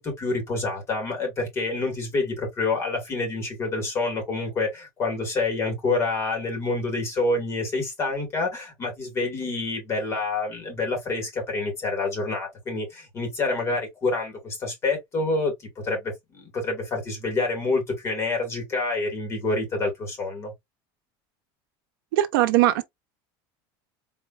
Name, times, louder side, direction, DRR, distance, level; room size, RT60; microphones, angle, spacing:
voice 1, 0.0-20.5, left 3 dB, 25° left, 2.1 m, -27 dB
voice 2, 22.1-22.8, right 15 dB, 80° right, 0.8 m, -20 dB
4.3 x 3.2 x 2.5 m
cardioid pair, 175°, 12 cm